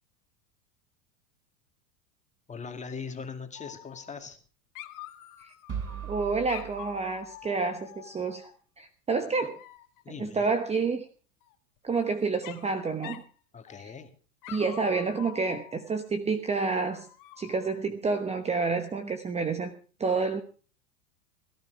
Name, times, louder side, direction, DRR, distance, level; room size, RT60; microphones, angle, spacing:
voice 1, 2.5-4.4 9.4-9.6 10.0-10.5 13.5-14.1, left 5 dB, 15° left, 6 dB, 2.3 m, -40 dB
Dog, 3.5-4.5 4.7-6.0 6.5-8.6 9.3-10.0 11.4-12.1 12.4-12.7 13.0-13.3 13.7-14.1 14.4-15.9 16.6-17.8, left 14 dB, 45° left, 2.0 m, -47 dB
sound 1, 5.7-7.7, right 8 dB, 35° right, 7.9 m, -39 dB
voice 2, 6.1-8.5 8.8-9.5 10.2-11.1 11.8-13.2 13.8-13.9 14.5-17.1 17.4-19.7 20.0-20.4, right 4 dB, 15° right, 9 dB, 1.1 m, -29 dB
17.5 x 12.0 x 4.7 m, 0.39 s
hypercardioid pair, 115°, 42 cm